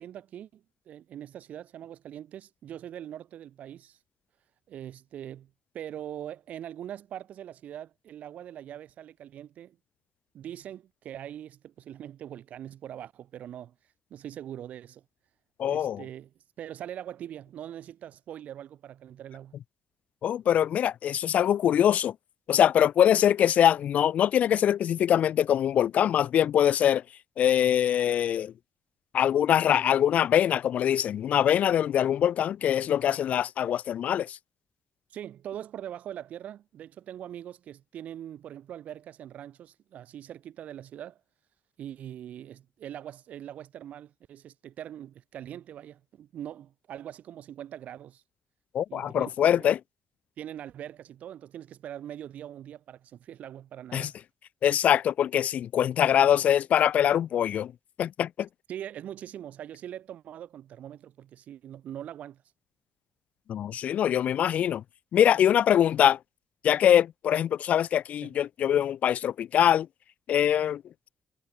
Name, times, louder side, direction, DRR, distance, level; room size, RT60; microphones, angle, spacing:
voice 1, 0.0-4.0 4.7-9.8 10.3-13.7 14.1-15.0 15.7-16.3 16.6-19.5 35.1-41.2 41.8-48.2 48.9-49.3 49.6-49.7 50.4-54.1 58.7-62.4 68.2-68.4, right 10 dB, 70° right, 6.4 m, -42 dB
voice 2, 15.6-16.0 20.2-22.1 22.5-27.0 27.4-28.5 29.1-34.4 48.7-49.8 53.9-54.1 54.6-57.7 58.0-58.5 63.5-64.8 65.1-66.2 66.6-69.9 70.3-70.8, left 10 dB, 65° left, 0.9 m, -23 dB
supercardioid pair, 70°, 3 cm